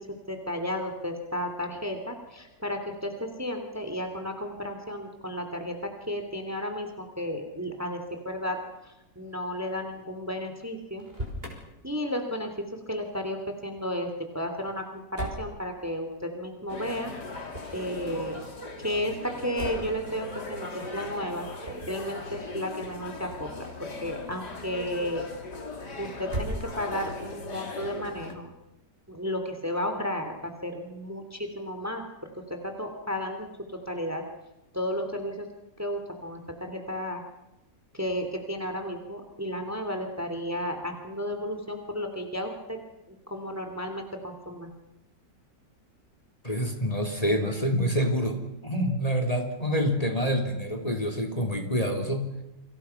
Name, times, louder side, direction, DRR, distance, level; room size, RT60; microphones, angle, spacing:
voice 1, 0.3-8.6 8.8-11.0 11.8-14.1 14.3-17.1 17.7-18.4 18.8-25.2 26.0-28.5 29.1-32.0 32.3-33.5 33.9-34.2 34.7-35.5 35.8-37.2 37.9-42.8 43.1-44.7, equal, 10° right, 5 dB, 2.8 m, -33 dB
Motor vehicle (road), 10.9-11.6 15.1-15.5 17.5-17.9 19.5-20.0 21.6-22.0 26.2-27.1, equal, 35° right, 6.1 m, -36 dB
sound 1, 16.7-28.3, left 3 dB, 75° left, 3.6 m, -39 dB
voice 2, 46.4-48.4 48.6-52.3, equal, 20° left, 4 dB, 3.3 m, -27 dB
29.5 x 25.5 x 5.9 m, 0.90 s
omnidirectional pair, 1.8 m